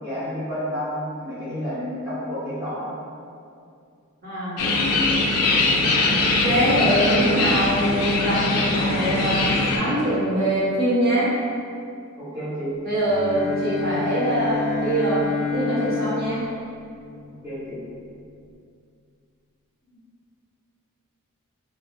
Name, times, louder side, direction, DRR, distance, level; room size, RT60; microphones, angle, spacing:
voice 1, 0.0-2.9 12.2-12.7 17.4-17.8, equal, 10° right, -14 dB, 0.7 m, -30 dB
voice 2, 4.2-4.6 6.3-11.3 12.8-16.4, right 1 dB, 45° right, -10 dB, 0.9 m, -23 dB
sound 1, 4.6-9.8, left 2 dB, 80° left, 0.3 m, -21 dB
Bowed string instrument, 13.0-17.6, left 5 dB, 25° left, 0.8 m, -29 dB
2.2 x 2.1 x 3.1 m, 2.4 s
head